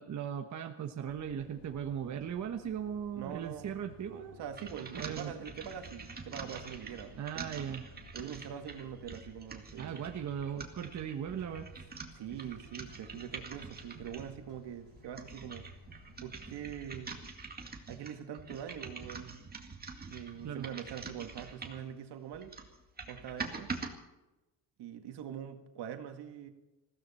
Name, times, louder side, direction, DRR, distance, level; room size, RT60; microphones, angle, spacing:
voice 1, 0.0-4.4 4.9-5.4 7.1-7.9 9.8-11.7 20.4-20.7, right 8 dB, 40° right, 4 dB, 1.2 m, -38 dB
sound 1, 1.0-17.3, left 4 dB, 75° left, 4.1 m, -58 dB
voice 2, 3.2-3.8 4.4-7.5 8.1-10.0 12.1-15.7 16.2-17.2 17.9-19.4 20.1-22.5 23.1-23.7 24.8-26.5, right 9 dB, 65° right, 6 dB, 2.1 m, -43 dB
sound 2, 4.5-14.4 14.9-21.9 22.3-23.9, right 4 dB, 20° right, 2.2 m, -45 dB
20.5 x 16.0 x 4.4 m, 1.0 s
cardioid pair, 130°, 43 cm